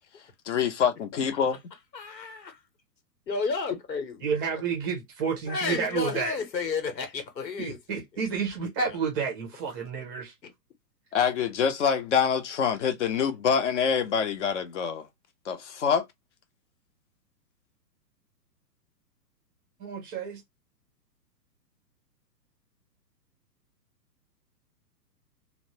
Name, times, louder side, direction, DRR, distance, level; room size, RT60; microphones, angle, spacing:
voice 1, 0.5-1.6 11.1-15.1 15.5-16.1, left 7 dB, 45° left, 0.7 m, -25 dB
voice 2, 1.9-2.6 3.3-4.6 5.5-8.0 8.9-9.0 10.4-10.5, left 4 dB, 80° left, 1.1 m, -32 dB
voice 3, 4.2-6.3 7.6-10.3 19.8-20.4, right 6 dB, 15° right, 0.5 m, -30 dB
2.9 x 2.1 x 2.8 m
hypercardioid pair, 125°, 50 cm